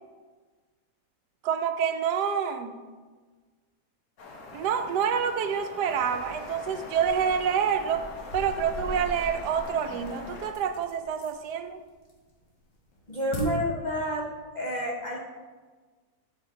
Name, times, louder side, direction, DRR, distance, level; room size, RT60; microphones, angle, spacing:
voice 1, 1.4-2.8 4.5-8.0 8.3-11.8, right 7 dB, 80° right, 8 dB, 1.2 m, -27 dB
sound 1, 4.2-10.5, left 3 dB, 65° left, 1.4 m, -42 dB
sound 2, 8.2-11.5 11.9-12.4 12.7-13.4, left 1 dB, 85° left, 2.0 m, -40 dB
voice 2, 13.1-15.2, equal, 35° left, -2 dB, 0.9 m, -30 dB
7.0 x 6.7 x 4.0 m, 1.4 s
omnidirectional pair, 1.8 m